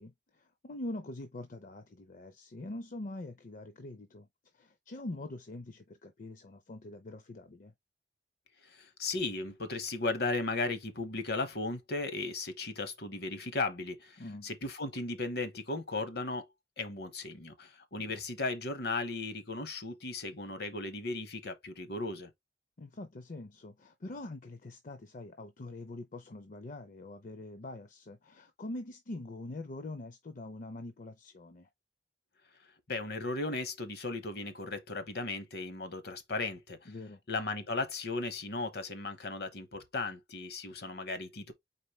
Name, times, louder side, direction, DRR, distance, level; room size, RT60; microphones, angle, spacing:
voice 1, 0.0-4.3 4.5-7.7 14.2-14.5 18.1-18.2 22.8-31.7 36.9-37.2, left 2 dB, 45° left, 0.5 m, -44 dB
voice 2, 8.6-16.5 16.8-22.3 32.9-36.9 37.3-41.5, left 3 dB, 60° left, 0.9 m, -36 dB
4.2 x 3.7 x 3.1 m
head